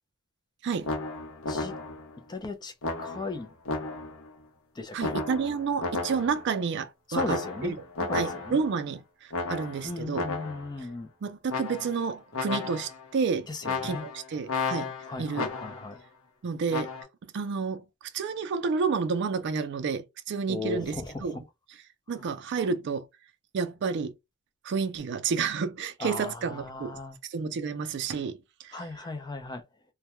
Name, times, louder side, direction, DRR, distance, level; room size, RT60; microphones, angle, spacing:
sound 1, 0.8-2.1 2.8-4.3 5.0-6.5 7.1-8.7 9.3-10.7 11.5-12.1 12.3-13.1 13.6-15.9 16.7-17.0, left 3 dB, 65° left, 0.7 m, -33 dB
voice 1, 2.3-2.7 3.0-3.5 4.7-5.2 7.1-8.6 9.8-11.1 13.5-14.1 15.1-16.0 20.5-21.4 22.1-22.3 26.0-27.2 28.7-29.6, left 2 dB, 20° left, 0.4 m, -37 dB
voice 2, 4.9-7.7 8.1-10.3 11.2-13.5 13.8-14.9 15.2-15.5 16.4-16.9 17.3-17.8 18.1-21.0 21.2-21.3 22.1-23.1 23.5-24.1 24.6-28.8, right 5 dB, 55° right, 0.4 m, -30 dB
2.2 x 2.2 x 2.9 m
head